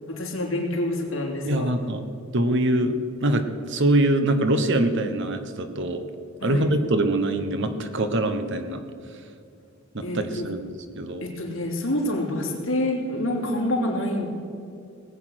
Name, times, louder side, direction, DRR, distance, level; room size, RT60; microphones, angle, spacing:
voice 1, 0.1-1.7 6.4-6.7 10.0-10.4 11.2-14.2, left 1 dB, 75° left, -1 dB, 2.9 m, -27 dB
voice 2, 1.4-2.0 2.3-2.9 3.2-6.0 6.4-8.8 9.9-11.3, right 1 dB, 60° right, 8 dB, 1.1 m, -24 dB
19.0 x 8.3 x 6.4 m, 2.6 s
head